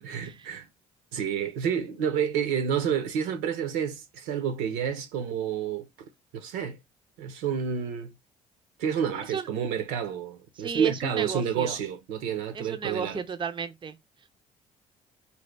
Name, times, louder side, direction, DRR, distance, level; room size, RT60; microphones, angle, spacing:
voice 1, 0.0-0.7 1.1-5.9 6.3-6.8 7.2-8.1 8.8-13.2, right 8 dB, 65° right, 0.8 m, -29 dB
voice 2, 10.6-11.8 12.5-14.0, right 6 dB, 30° right, 0.6 m, -33 dB
4.1 x 2.5 x 3.4 m
figure-of-eight pair, 45°, 17 cm